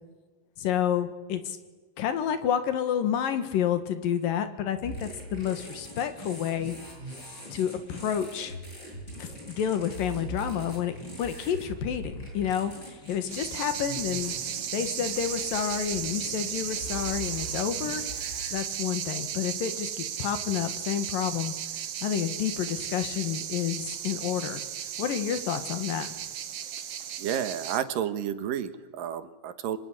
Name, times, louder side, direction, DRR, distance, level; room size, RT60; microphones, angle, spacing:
voice 1, 0.6-1.6 2.0-6.7 7.5-8.6 9.2-14.3 14.7-18.0 18.5-21.5 22.0-24.6 25.0-26.1, left 9 dB, 85° left, 9 dB, 3.4 m, -29 dB
sound 1, 4.8-18.5, equal, 30° left, 8.8 m, -41 dB
sound 2, 13.3-27.8, right 9 dB, 60° right, 1.8 m, -35 dB
voice 2, 27.2-29.8, right 9 dB, 80° right, 10 dB, 3.1 m, -31 dB
25.5 x 23.0 x 9.8 m, 1.3 s
omnidirectional pair, 3.9 m